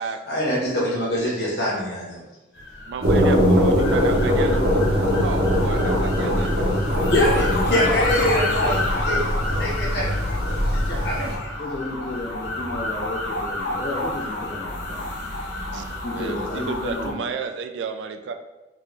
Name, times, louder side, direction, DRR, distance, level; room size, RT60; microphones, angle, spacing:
voice 1, 0.0-2.2 7.1-11.5, left 1 dB, 60° left, -5 dB, 1.2 m, -25 dB
sound 1, 2.5-17.1, left 2 dB, 90° left, 0.7 m, -30 dB
voice 2, 2.9-6.5 6.9-7.0 15.7-18.3, right 5 dB, 75° right, 7 dB, 0.3 m, -32 dB
sound 2, 3.0-11.3, equal, 60° right, 0.9 m, -21 dB
voice 3, 7.7-8.2 11.6-15.1 16.0-17.3, left 2 dB, 35° left, -4 dB, 0.4 m, -32 dB
3.7 x 2.4 x 3.2 m, 1.0 s
head